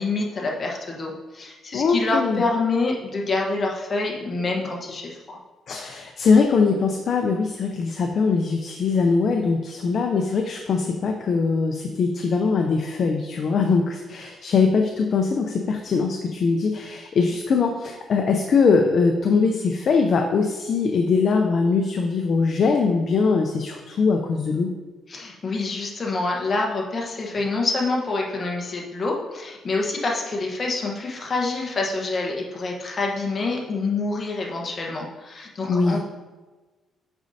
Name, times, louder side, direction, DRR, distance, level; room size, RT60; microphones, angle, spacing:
voice 1, 0.0-5.2 25.1-36.0, left 3 dB, 35° left, -1 dB, 1.1 m, -26 dB
voice 2, 1.7-2.4 5.7-24.7 35.7-36.0, left 4 dB, 50° left, 3 dB, 0.5 m, -21 dB
8.1 x 5.2 x 2.7 m, 1.3 s
cardioid pair, 120°, 0 cm